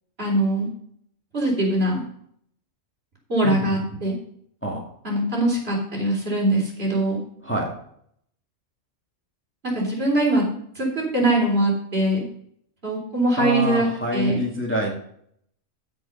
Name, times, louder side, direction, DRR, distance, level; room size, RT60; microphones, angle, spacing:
voice 1, 0.2-0.7 1.3-2.0 3.3-4.1 5.0-7.2 9.6-10.4 10.8-12.2 12.8-13.9 14.1-14.4, right 1 dB, 50° right, -3 dB, 4.0 m, -22 dB
voice 2, 3.4-3.8 4.6-4.8 7.4-7.7 13.4-14.9, equal, 10° left, -1 dB, 2.2 m, -26 dB
15.5 x 5.3 x 5.4 m, 0.67 s
omnidirectional pair, 1.4 m